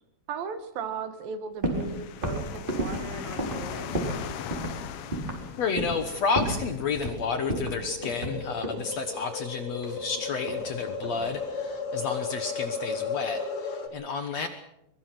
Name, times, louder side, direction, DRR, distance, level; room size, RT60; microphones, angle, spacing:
voice 1, 0.3-4.0, right 6 dB, 70° right, 10 dB, 3.2 m, -37 dB
sound 1, 1.6-1.9 2.2-4.2 4.5-4.7 5.1-5.4 5.8-6.1 6.3-7.2 7.5-8.8 9.8-10.7 11.0-11.5, right 1 dB, 15° right, 4.3 m, -32 dB
sound 2, 1.7-6.8, left 9 dB, 85° left, 3.2 m, -39 dB
sound 3, 4.8-13.9, left 4 dB, 40° left, 2.6 m, -35 dB
voice 2, 5.6-14.5, left 5 dB, 60° left, 8 dB, 2.0 m, -31 dB
23.5 x 21.5 x 6.1 m, 0.82 s
omnidirectional pair, 4.3 m